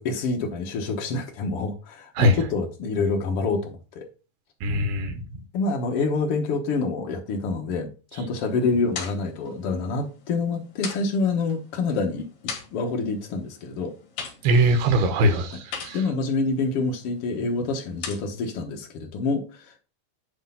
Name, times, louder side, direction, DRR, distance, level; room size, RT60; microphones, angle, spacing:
voice 1, 0.0-4.1 5.5-12.3 12.7-13.9 15.5-15.6 15.9-19.8, left 3 dB, 85° left, 1.3 m, -27 dB
voice 2, 4.6-5.2 14.4-16.0, right 1 dB, 85° right, 3.0 m, -21 dB
sound 1, 8.4-18.5, left 6 dB, 65° left, 3.5 m, -41 dB
10.0 x 3.4 x 5.5 m
omnidirectional pair, 4.4 m